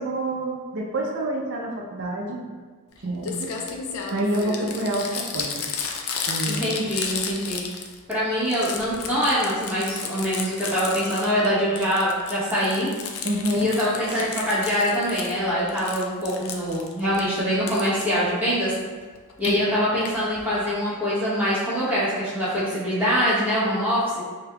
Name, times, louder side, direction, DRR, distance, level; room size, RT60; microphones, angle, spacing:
voice 1, 0.0-2.4 3.0-3.5 4.1-5.5 6.3-6.6 13.2-13.7 14.1-14.3 19.4-19.7, right 1 dB, 55° right, -1 dB, 0.5 m, -27 dB
Crumpling crinkling, 2.9-3.0 3.2-8.1 8.4-11.5 11.8-15.4 15.7-17.2 17.7-18.0 19.2-19.5 20.0-20.1 20.4-20.5 20.7-20.8, left 6 dB, 70° left, 0.4 m, -33 dB
voice 2, 6.5-7.6 8.1-12.9 13.5-18.7 19.4-24.2, equal, 10° right, -11 dB, 0.9 m, -24 dB
5.0 x 2.8 x 2.3 m, 1.5 s
head